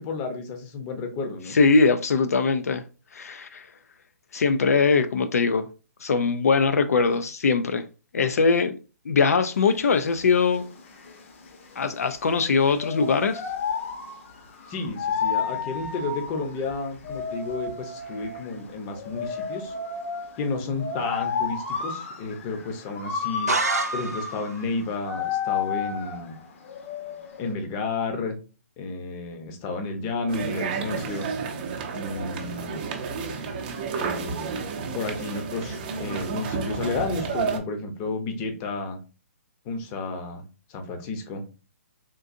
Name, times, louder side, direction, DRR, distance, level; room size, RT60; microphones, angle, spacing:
voice 1, 0.0-1.6 14.7-19.7 20.4-23.5 23.9-26.4 27.4-28.4 28.8-31.3 31.9-32.8 34.0-34.6 34.9-39.0 39.6-40.4 40.7-41.4, left 3 dB, 25° left, 0.7 m, -31 dB
voice 2, 1.5-2.8 3.1-3.7 4.3-5.7 6.0-7.8 8.1-8.8 9.1-10.6 11.8-13.5, left 4 dB, 75° left, 0.4 m, -21 dB
sound 1, 9.5-27.5, left 6 dB, 50° left, 0.9 m, -32 dB
sound 2, 23.5-24.6, right 4 dB, 85° right, 0.6 m, -27 dB
sound 3, 30.3-37.6, right 5 dB, 40° right, 0.6 m, -31 dB
3.7 x 2.6 x 2.5 m
hypercardioid pair, 150°, 8 cm